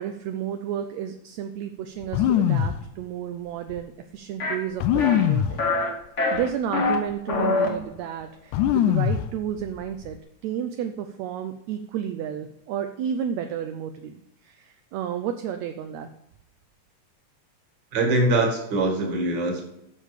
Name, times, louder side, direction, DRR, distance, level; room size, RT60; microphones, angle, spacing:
voice 1, 0.0-5.7 6.3-10.2 10.4-16.1, right 9 dB, 75° right, 7 dB, 1.8 m, -32 dB
sound 1, 2.0-2.8 3.7-3.8 4.8-5.6 6.4-6.5 6.9-7.4 8.5-9.3 9.6-10.1, left 10 dB, 85° left, 2.1 m, -22 dB
sound 2, 4.4-4.6 5.0-5.3 5.6-5.9 6.2-7.0 7.3-7.7, left 3 dB, 50° left, 0.8 m, -24 dB
voice 2, 17.9-19.6, right 2 dB, 40° right, 1 dB, 2.4 m, -23 dB
9.9 x 6.5 x 5.0 m, 0.81 s
omnidirectional pair, 3.5 m